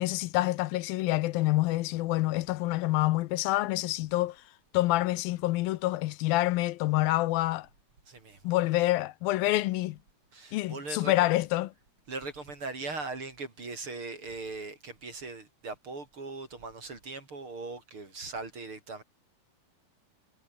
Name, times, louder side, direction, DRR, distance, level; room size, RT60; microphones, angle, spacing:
voice 1, 0.0-4.4 4.7-7.7 8.4-10.0 10.5-11.7, left 17 dB, 85° left, 2.5 m, -27 dB
voice 2, 8.1-8.5 10.3-11.1 12.1-19.0, right 3 dB, 35° right, 5.1 m, -40 dB
omnidirectional pair, 4.2 m